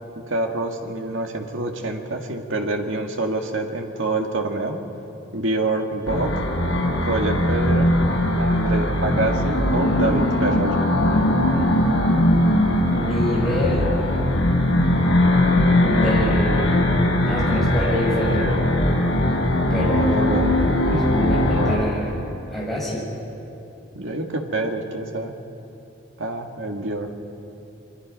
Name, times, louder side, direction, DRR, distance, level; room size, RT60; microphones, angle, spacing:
voice 1, 0.2-4.8 5.3-6.3 7.0-7.9 8.4-10.7 19.8-20.5 20.9-21.1 23.9-25.3 26.2-27.1, right 2 dB, 70° right, 3 dB, 1.9 m, -26 dB
sound 1, 6.1-21.8, left 1 dB, 80° left, 4.4 m, -20 dB
voice 2, 12.9-13.9 15.8-16.8 17.3-18.5 19.7-20.3 20.9-22.2 22.5-23.0, equal, ahead, -6 dB, 6.0 m, -26 dB
24.5 x 22.5 x 5.4 m, 2.9 s
head